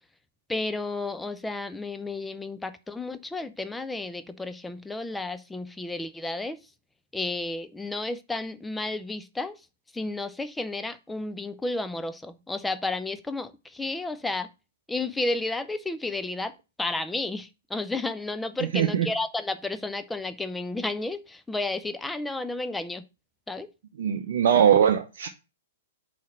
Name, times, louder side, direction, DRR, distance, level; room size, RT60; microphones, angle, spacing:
voice 1, 0.5-6.6 7.1-9.6 9.9-14.5 14.9-16.5 16.8-23.0 23.5-23.7, left 2 dB, 5° left, 0.6 m, -32 dB
voice 2, 18.7-19.1 24.0-25.3, right 8 dB, 50° right, 0.7 m, -21 dB
5.7 x 4.2 x 6.2 m
figure-of-eight pair, 110°, 0 cm